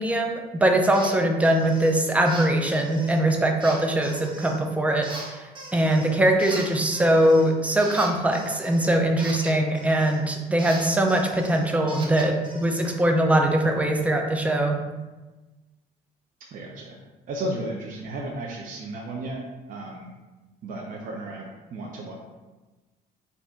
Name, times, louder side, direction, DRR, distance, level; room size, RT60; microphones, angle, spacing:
voice 1, 0.0-14.8, right 1 dB, 10° right, 2 dB, 0.5 m, -22 dB
sound 1, 0.9-1.1 1.4-1.9 2.3-3.2 3.6-4.6 5.0-6.1 6.4-10.2 10.6-13.0, right 1 dB, 30° right, 0.9 m, -40 dB
voice 2, 16.5-17.0 17.3-19.4 19.7-20.1 20.6-22.1, right 1 dB, 55° right, -1 dB, 0.7 m, -34 dB
4.3 x 2.6 x 4.5 m, 1.2 s
cardioid pair, 130°, 16 cm